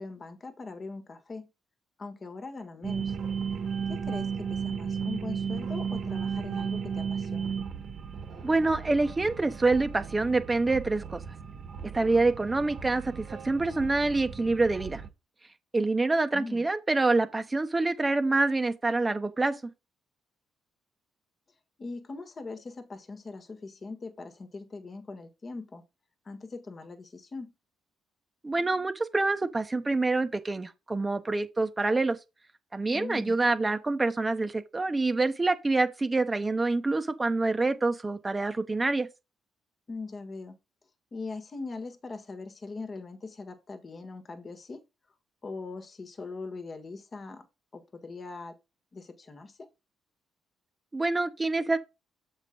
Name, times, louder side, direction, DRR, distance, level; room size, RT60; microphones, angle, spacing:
voice 1, 0.0-1.5 2.0-3.2 3.9-7.5 16.3-16.6 21.8-25.8 26.2-27.5 32.9-33.3 39.9-40.6 41.1-44.8 45.4-47.5 47.7-48.5 48.9-49.7, left 3 dB, 35° left, 1.4 m, -41 dB
sound 1, 2.8-15.1, right 6 dB, 55° right, 1.4 m, -35 dB
voice 2, 8.4-11.2 11.8-15.0 15.7-19.6 28.4-32.2 32.7-39.1 50.9-51.8, right 3 dB, 20° right, 1.0 m, -26 dB
7.4 x 5.2 x 3.7 m
cardioid pair, 90°, 0 cm